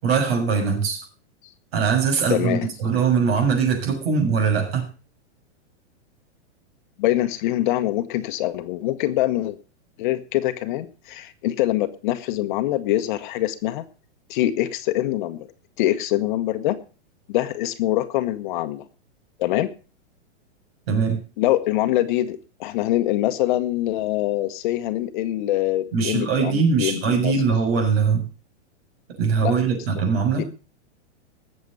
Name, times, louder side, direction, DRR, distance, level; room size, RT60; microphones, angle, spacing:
voice 1, 0.0-1.0 1.7-4.9 20.9-21.2 25.9-28.3 29.2-30.5, right 5 dB, 60° right, 3 dB, 7.1 m, -21 dB
voice 2, 2.3-2.7 7.0-9.6 10.0-13.8 14.3-15.5 15.8-16.8 17.3-18.8 19.4-19.7 21.4-27.3 29.4-29.8 30.4-30.5, left 14 dB, 45° left, 10 dB, 1.3 m, -24 dB
20.0 x 7.9 x 5.4 m, 0.36 s
supercardioid pair, 160°, 35 cm